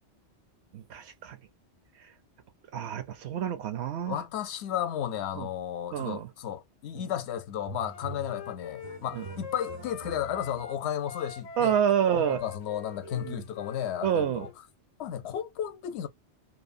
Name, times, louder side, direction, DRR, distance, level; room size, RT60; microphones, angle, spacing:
voice 1, 0.7-1.4 2.0-2.1 2.7-4.2 5.4-5.5 5.9-6.3 9.1-9.3 11.6-12.4 13.1-13.4 14.0-14.5, right 9 dB, 75° right, 0.8 m, -28 dB
voice 2, 4.1-11.8 12.2-14.5 15.0-16.1, left 10 dB, 70° left, 0.8 m, -33 dB
sound 1, 6.9-7.3 7.6-10.7, right 5 dB, 45° right, 0.3 m, -45 dB
Wind instrument woodwind instrument, 7.9-10.8 11.0-14.5, left 7 dB, 50° left, 0.4 m, -44 dB
2.7 x 2.0 x 2.5 m
omnidirectional pair, 1.2 m